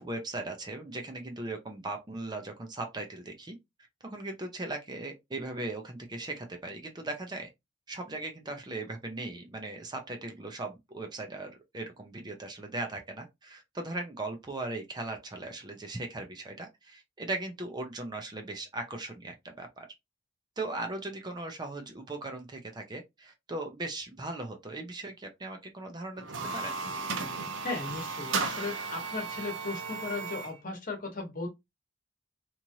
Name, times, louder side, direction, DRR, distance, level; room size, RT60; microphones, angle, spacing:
voice 1, 0.0-3.6 4.0-7.5 7.9-19.9 20.6-26.7, right 2 dB, 20° right, 0.5 m, -38 dB
sound 1, 26.2-30.6, right 4 dB, 85° right, 0.6 m, -35 dB
voice 2, 27.6-31.5, left 3 dB, 45° left, 1.1 m, -36 dB
3.0 x 2.5 x 2.7 m
head